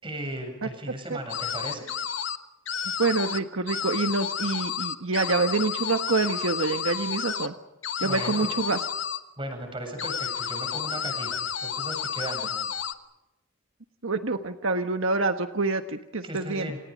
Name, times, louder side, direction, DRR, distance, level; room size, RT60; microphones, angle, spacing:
voice 1, 0.0-1.9 8.0-8.5 9.4-12.7 16.2-16.8, right 1 dB, 25° right, 4 dB, 7.8 m, -36 dB
sound 1, 1.3-2.4 2.7-3.4 3.7-7.5 7.8-9.2 10.0-12.9, left 8 dB, 60° left, 1.4 m, -31 dB
voice 2, 3.0-7.5 8.0-8.8 14.0-16.7, right 3 dB, 75° right, 7 dB, 1.3 m, -26 dB
29.5 x 27.5 x 5.3 m, 0.93 s
head